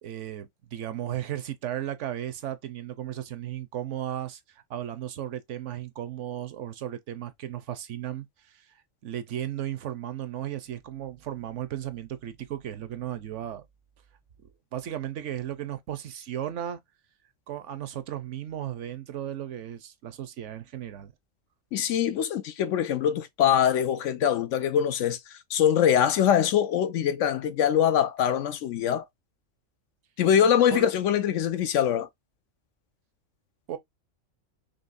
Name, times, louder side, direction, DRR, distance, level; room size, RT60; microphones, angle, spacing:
voice 1, 0.0-8.7 9.0-13.6 14.7-16.8 17.5-21.1 30.7-30.9 33.7-33.8, right 11 dB, 70° right, 1.0 m, -35 dB
voice 2, 21.7-25.2 25.5-29.0 30.2-32.1, left 9 dB, 75° left, 1.0 m, -23 dB
5.4 x 3.1 x 2.6 m
omnidirectional pair, 1.4 m